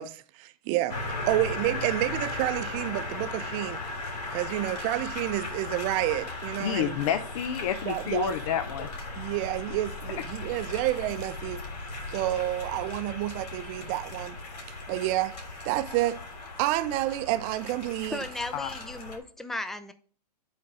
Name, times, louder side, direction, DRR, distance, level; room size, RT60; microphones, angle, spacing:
voice 1, 0.0-3.8 4.3-6.9 7.9-8.3 9.2-11.6 12.1-14.4 14.9-15.3 15.6-16.2 16.6-18.2, right 15 dB, 40° right, 0.6 m, -29 dB
sound 1, 0.9-19.2, left 2 dB, 75° left, 3.2 m, -37 dB
voice 2, 6.6-8.9 18.5-18.7, left 9 dB, 55° left, 0.6 m, -29 dB
voice 3, 18.1-19.9, left 2 dB, ahead, 0.5 m, -36 dB
9.3 x 4.1 x 4.8 m
hypercardioid pair, 120°, 21 cm